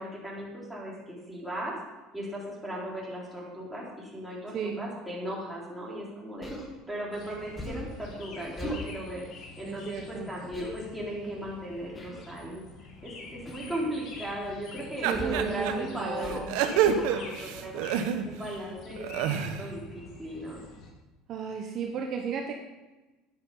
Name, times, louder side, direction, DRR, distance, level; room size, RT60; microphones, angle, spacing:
voice 1, 0.0-1.7 2.1-6.5 6.9-9.2 9.6-12.7 13.0-17.9 18.2-20.6, equal, 5° right, -6 dB, 3.9 m, -37 dB
Human voice, 6.4-6.7 7.6-7.9 8.6-8.9 10.5-10.7 11.9-12.3 13.5-13.7 15.1-15.5 16.2-16.5 16.8-17.1, equal, 20° left, 2.0 m, -37 dB
sound 1, 7.1-20.9, left 3 dB, 50° left, 2.1 m, -47 dB
voice 2, 9.6-10.3 15.0-16.4 21.3-22.5, right 6 dB, 45° right, 2 dB, 1.1 m, -33 dB
sound 2, 15.0-15.7 16.2-18.5 18.9-19.7, right 9 dB, 80° right, 1.1 m, -28 dB
9.8 x 9.6 x 5.6 m, 1.1 s
cardioid pair, 140°, 0 cm